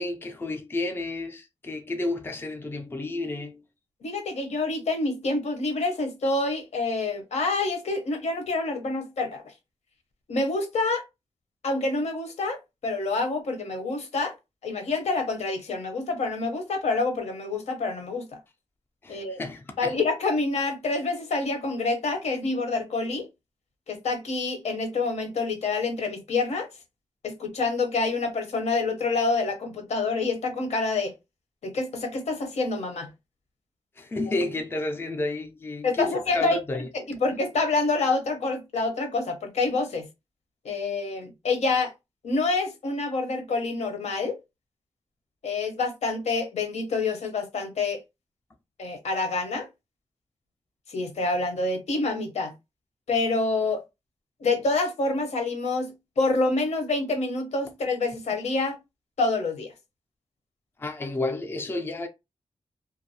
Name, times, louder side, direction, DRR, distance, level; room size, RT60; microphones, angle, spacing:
voice 1, 0.0-3.6 19.0-20.0 34.0-36.9 60.8-62.1, left 2 dB, 20° left, 0.4 m, -31 dB
voice 2, 4.0-9.5 10.3-11.0 11.6-12.6 12.8-14.3 14.6-18.4 19.1-19.4 19.8-23.3 23.9-26.7 27.2-31.1 31.6-33.1 35.8-36.6 36.9-40.1 40.6-41.9 42.2-44.4 45.4-48.0 48.8-49.7 50.9-52.5 53.1-53.8 54.4-58.8 59.2-59.7, left 3 dB, 75° left, 0.8 m, -27 dB
2.5 x 2.3 x 2.7 m
wide cardioid pair, 155°, 11 cm